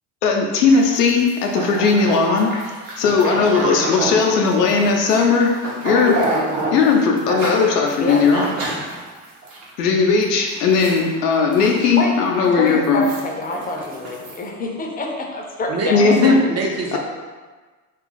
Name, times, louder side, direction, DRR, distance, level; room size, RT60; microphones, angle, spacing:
voice 1, 0.2-2.5 3.0-5.5 5.8-6.1 6.7-8.4 9.8-13.0 15.9-16.4 16.9-17.0, left 5 dB, 85° left, 1 dB, 0.6 m, -17 dB
sound 1, 0.7-9.6 10.0-10.2 10.5-11.0 11.4-12.3 12.7-14.4, right 2 dB, 75° right, 1.0 m, -28 dB
voice 2, 6.1-6.4 8.0-8.4 8.7-8.9 11.9-12.2 12.6-16.2, left 2 dB, 20° left, 0 dB, 0.5 m, -26 dB
voice 3, 15.7-17.0, right 2 dB, 35° right, 0 dB, 0.6 m, -24 dB
2.5 x 2.4 x 3.8 m, 1.4 s
hypercardioid pair, 65°, 46 cm